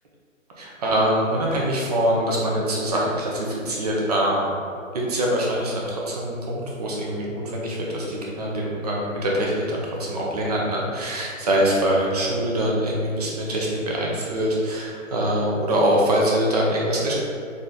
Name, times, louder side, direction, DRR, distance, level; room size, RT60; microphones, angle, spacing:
voice 1, 0.6-4.5 4.9-17.1, right 1 dB, 30° right, -3 dB, 0.7 m, -24 dB
4.1 x 3.3 x 3.9 m, 2.5 s
hypercardioid pair, 155°, 40 cm